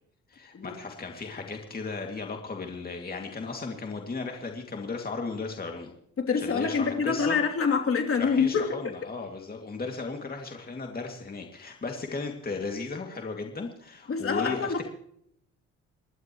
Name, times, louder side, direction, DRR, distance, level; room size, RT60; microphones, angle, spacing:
voice 1, 0.3-5.9 6.3-7.4 8.2-14.8, left 4 dB, 30° left, 2 dB, 2.4 m, -35 dB
voice 2, 6.2-8.8 14.1-14.8, left 5 dB, 45° left, 2 dB, 3.0 m, -26 dB
28.0 x 12.0 x 3.1 m, 0.69 s
cardioid pair, 90°, 30 cm